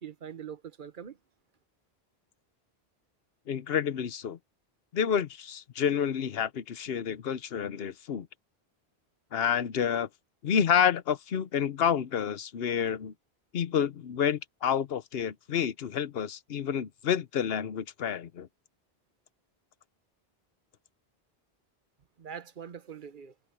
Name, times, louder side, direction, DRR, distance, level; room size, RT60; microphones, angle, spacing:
voice 1, 0.0-1.2 22.2-23.3, right 8 dB, 55° right, 1.0 m, -43 dB
voice 2, 3.5-4.4 4.9-8.3 9.3-10.1 10.4-13.1 13.5-18.5, left 8 dB, 70° left, 1.0 m, -29 dB
omnidirectional pair, 1.1 m